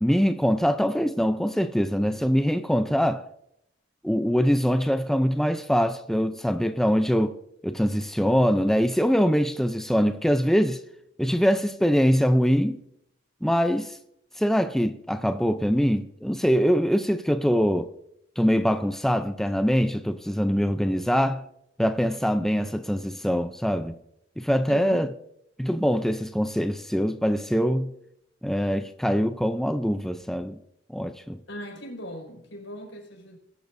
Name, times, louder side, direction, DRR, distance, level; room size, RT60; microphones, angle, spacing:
voice 1, 0.0-3.2 4.0-7.4 7.6-10.8 11.2-12.8 13.4-14.0 14.4-17.9 18.4-21.4 21.8-24.0 24.4-25.1 25.6-27.9 28.4-30.6 30.9-31.4, equal, ahead, 0.5 m, -23 dB
voice 2, 24.7-25.1 31.5-33.4, equal, 80° left, 5.1 m, -39 dB
21.5 x 12.0 x 2.6 m
head